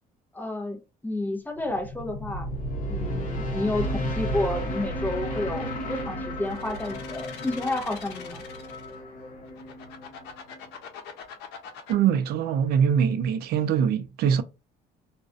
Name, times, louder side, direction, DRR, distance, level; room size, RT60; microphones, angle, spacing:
voice 1, 0.3-2.5 2.9-8.4, left 2 dB, 10° left, 0.6 m, -31 dB
sound 1, 1.6-10.7, equal, 55° left, 0.8 m, -33 dB
sound 2, 6.5-8.9 9.4-11.9, left 7 dB, 90° left, 0.6 m, -43 dB
voice 2, 11.9-14.4, right 8 dB, 70° right, 0.4 m, -23 dB
2.4 x 2.2 x 2.5 m
cardioid pair, 110°, 17 cm